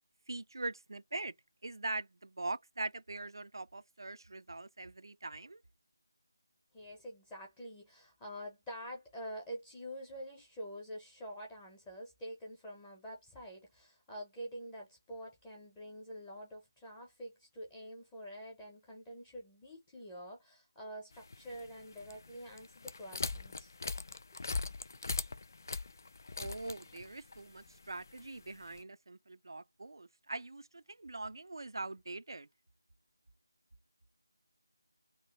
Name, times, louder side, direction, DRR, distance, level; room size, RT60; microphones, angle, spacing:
voice 1, 0.3-1.3 1.6-5.6 26.3-32.5, right 2 dB, 70° right, 0.5 m, -42 dB
voice 2, 6.7-23.7, equal, 10° left, 0.9 m, -47 dB
sound 1, 21.1-28.8, left 4 dB, 50° left, 0.4 m, -42 dB
2.9 x 2.7 x 4.2 m
figure-of-eight pair, 165°, 2 cm